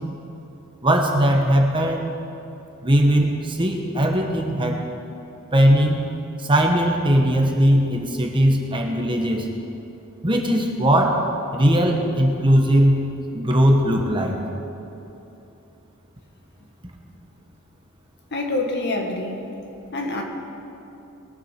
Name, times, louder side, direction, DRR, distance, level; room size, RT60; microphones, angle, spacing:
voice 1, 0.8-2.0 2.8-4.8 5.5-6.0 6.4-9.5 10.2-11.3 11.5-13.1 13.3-14.4, equal, 20° right, 2 dB, 1.2 m, -19 dB
voice 2, 18.3-19.5 19.9-20.2, left 2 dB, 50° left, 2 dB, 1.6 m, -26 dB
21.5 x 7.5 x 5.9 m, 2.9 s
head